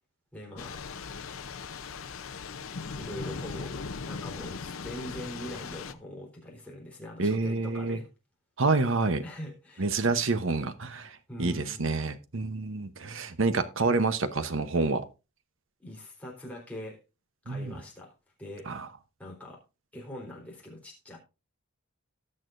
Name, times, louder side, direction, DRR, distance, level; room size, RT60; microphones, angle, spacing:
voice 1, 0.3-1.1 3.0-8.1 9.2-10.1 11.3-12.0 15.8-17.0 17.5-18.1 18.4-18.7 19.2-19.6 19.9-21.2, left 1 dB, 5° left, -3 dB, 3.7 m, -43 dB
Thunder / Rain, 0.6-5.9, left 5 dB, 65° left, 0.7 m, -39 dB
voice 2, 7.2-8.0 8.6-9.2 9.8-11.1 11.4-15.0 17.5-17.7 18.7-18.9, right 3 dB, 60° right, 11 dB, 0.9 m, -28 dB
19.0 x 6.5 x 2.6 m, 0.29 s
head